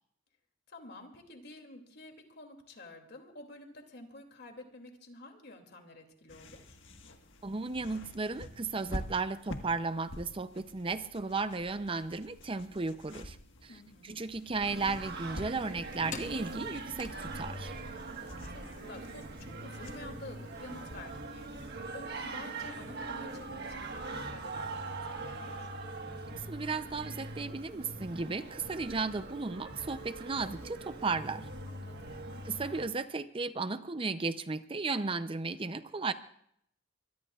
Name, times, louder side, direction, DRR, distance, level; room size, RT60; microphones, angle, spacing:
voice 1, 0.7-6.8 13.7-14.2 18.5-25.7 31.6-32.4, left 2 dB, 60° left, 3 dB, 2.7 m, -50 dB
sound 1, 6.3-21.7, left 1 dB, 75° left, 1.6 m, -48 dB
voice 2, 7.4-13.4 13.6-13.7 14.0-17.7 26.5-31.5 32.4-36.1, right 4 dB, 30° right, 11 dB, 0.6 m, -35 dB
Singing, 14.6-32.8, right 2 dB, 55° right, 1.5 m, -42 dB
sound 2, 15.6-21.1, left 4 dB, 40° left, 1.0 m, -51 dB
24.0 x 22.0 x 2.4 m, 0.69 s
head